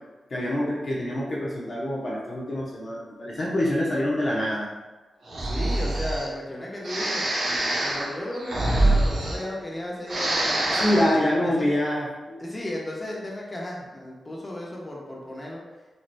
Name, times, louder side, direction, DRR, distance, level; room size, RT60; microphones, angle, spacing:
voice 1, 0.3-4.7 10.8-12.4, left 1 dB, 50° left, -5 dB, 0.8 m, -25 dB
Breathing, 5.3-6.3 6.8-9.8 10.0-11.2, right 1 dB, 70° right, 1.1 m, -25 dB
voice 2, 5.4-11.7 12.4-15.6, left 1 dB, 25° left, -3 dB, 1.0 m, -35 dB
5.3 x 2.9 x 2.3 m, 1.2 s
cardioid pair, 60°, 0 cm